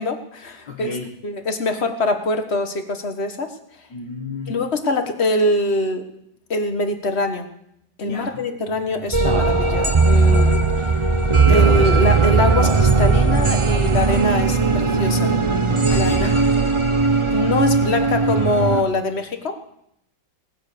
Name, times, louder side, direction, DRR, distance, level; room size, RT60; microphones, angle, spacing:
voice 1, 0.0-0.9 1.2-3.5 4.5-6.1 6.5-7.5 8.0-10.9 11.5-15.3 15.9-16.2 17.3-19.6, left 2 dB, 40° left, 6 dB, 1.6 m, -23 dB
voice 2, 0.7-1.1 3.9-4.6 8.0-8.4 15.8-16.4, left 4 dB, 75° left, -1 dB, 2.1 m, -32 dB
sound 1, 9.1-18.8, right 4 dB, 25° right, 0.7 m, -17 dB
18.5 x 9.6 x 6.8 m, 0.78 s
omnidirectional pair, 1.9 m